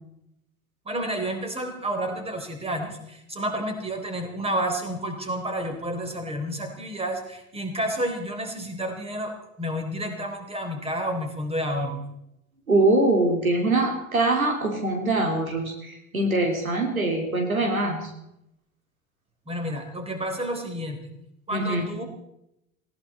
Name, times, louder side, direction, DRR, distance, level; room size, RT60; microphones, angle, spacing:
voice 1, 0.9-12.0 19.5-21.0 21.5-22.0, right 1 dB, 15° right, 5 dB, 3.9 m, -30 dB
voice 2, 12.7-18.1 21.5-21.9, right 2 dB, 80° right, 3 dB, 3.0 m, -23 dB
19.5 x 17.5 x 4.3 m, 0.84 s
figure-of-eight pair, 75°, 41 cm